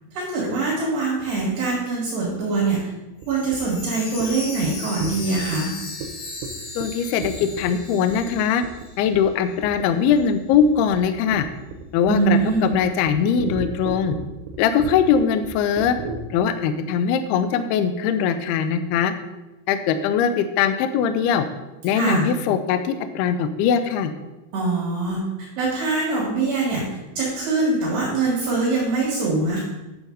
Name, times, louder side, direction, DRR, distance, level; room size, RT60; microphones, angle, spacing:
voice 1, 0.1-2.8 3.3-5.7 12.1-12.7 21.9-22.3 24.5-26.8 27.2-29.6, right 3 dB, 65° right, -5 dB, 3.9 m, -23 dB
Chime, 3.2-9.2 9.5-9.6 10.1-10.2, left 3 dB, 75° left, 4.5 m, -36 dB
sound 1, 3.2-3.3 3.5-3.8 4.2-4.3 4.6-4.7 5.0-5.6 6.0-6.1 6.4-6.5 6.8-6.9 7.2-7.8 8.1-8.3 8.6-8.9 9.1-9.4 9.6-9.9 10.1-16.2, right 5 dB, 90° right, 3.4 m, -33 dB
voice 2, 6.8-8.6 9.0-11.5 11.9-14.2 14.6-16.0 16.3-19.1 19.7-21.5 21.8-24.1, left 7 dB, 90° left, 9 dB, 2.3 m, -21 dB
10.5 x 7.2 x 4.0 m, 1.0 s
omnidirectional pair, 5.4 m